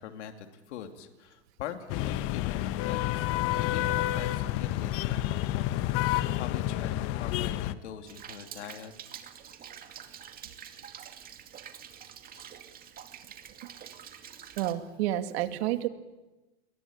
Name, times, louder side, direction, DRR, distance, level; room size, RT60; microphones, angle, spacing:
voice 1, 0.0-3.3 3.6-8.9 12.3-12.5, left 9 dB, 75° left, 6 dB, 3.0 m, -43 dB
sound 1, 1.9-7.7, left 14 dB, 40° left, 1.1 m, -29 dB
Rain, 8.1-14.7, right 8 dB, 25° right, 2.4 m, -47 dB
voice 2, 14.6-15.9, right 13 dB, 60° right, 9 dB, 2.3 m, -29 dB
29.5 x 22.5 x 8.9 m, 1.1 s
supercardioid pair, 135°, 35 cm